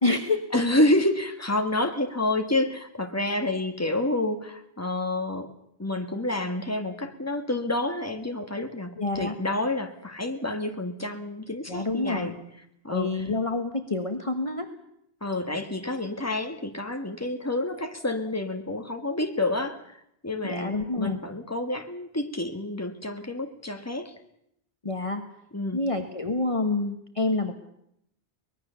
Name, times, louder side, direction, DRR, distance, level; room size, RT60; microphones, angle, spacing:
voice 1, 0.0-0.5 9.0-9.3 11.7-12.4 12.9-14.7 20.4-21.2 24.8-25.2 25.7-27.5, left 2 dB, 30° left, 6 dB, 1.5 m, -27 dB
voice 2, 0.5-5.5 5.8-12.4 12.8-13.3 15.2-24.1 25.5-25.8, left 1 dB, 15° left, 6 dB, 1.8 m, -28 dB
24.0 x 20.0 x 7.0 m, 0.76 s
omnidirectional pair, 1.0 m